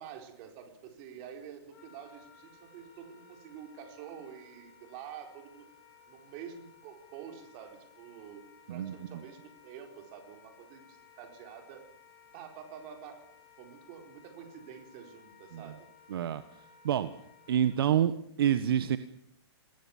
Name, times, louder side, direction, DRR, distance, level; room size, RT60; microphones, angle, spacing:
voice 1, 0.0-5.7 6.1-11.9 12.3-13.3 13.6-15.9, right 8 dB, 30° right, 5 dB, 4.4 m, -48 dB
Wind instrument woodwind instrument, 1.7-17.8, left 7 dB, 40° left, 5.7 m, -59 dB
voice 2, 16.1-16.4 16.8-17.1 17.5-19.0, right 10 dB, 55° right, 12 dB, 1.4 m, -27 dB
27.0 x 21.0 x 7.3 m, 0.69 s
hypercardioid pair, 170°, 14 cm